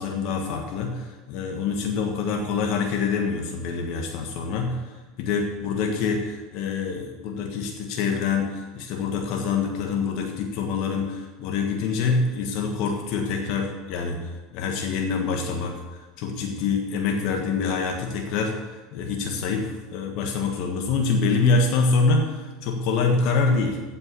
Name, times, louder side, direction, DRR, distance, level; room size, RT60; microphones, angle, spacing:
voice 1, 0.0-23.8, left 4 dB, 60° left, 2 dB, 1.4 m, -26 dB
8.4 x 7.6 x 8.4 m, 1.3 s
hypercardioid pair, 85°, 0 cm